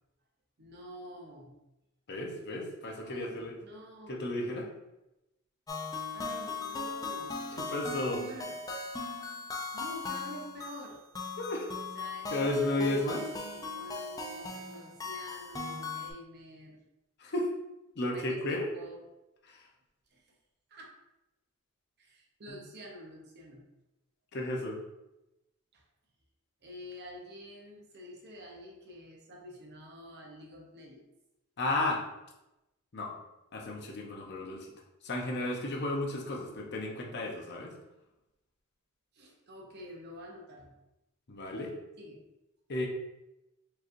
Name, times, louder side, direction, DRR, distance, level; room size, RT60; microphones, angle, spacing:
voice 1, 0.6-1.6 3.0-4.3 6.1-7.4 8.2-8.6 9.7-11.0 11.9-12.4 12.9-16.8 18.1-19.0 20.1-20.2 20.7-20.9 22.0-23.6 25.7-25.8 26.6-31.0 39.1-40.7 42.0-42.2, equal, 50° right, 1 dB, 0.7 m, -48 dB
voice 2, 2.1-3.5 4.1-4.7 7.6-8.3 11.4-11.7 12.3-13.2 17.2-17.5 18.0-18.7 19.5-19.7 22.5-22.6 24.3-24.8 31.6-32.0 32.9-33.1 33.5-34.7 35.0-37.7 41.3-41.7 42.7-42.9, left 2 dB, 50° left, 0 dB, 0.7 m, -33 dB
sound 1, 5.7-16.1, left 4 dB, 15° left, 0.4 m, -38 dB
4.7 x 3.0 x 2.5 m, 0.93 s
head